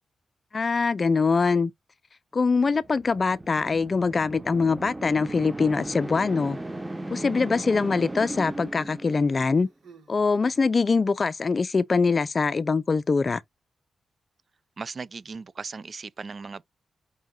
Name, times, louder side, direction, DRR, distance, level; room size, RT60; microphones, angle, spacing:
voice 1, 0.5-1.7 2.3-6.6 7.1-9.7 10.1-13.4, left 4 dB, 40° left, 0.4 m, -23 dB
sound 1, 2.7-9.6, right 1 dB, 15° right, 0.8 m, -37 dB
Human voice, 7.4-8.3 9.2-11.1 12.0-12.2, right 5 dB, 75° right, 3.7 m, -58 dB
voice 2, 14.8-16.6, right 4 dB, 50° right, 0.4 m, -37 dB
5.5 x 2.5 x 3.7 m
cardioid pair, 75°, 0 cm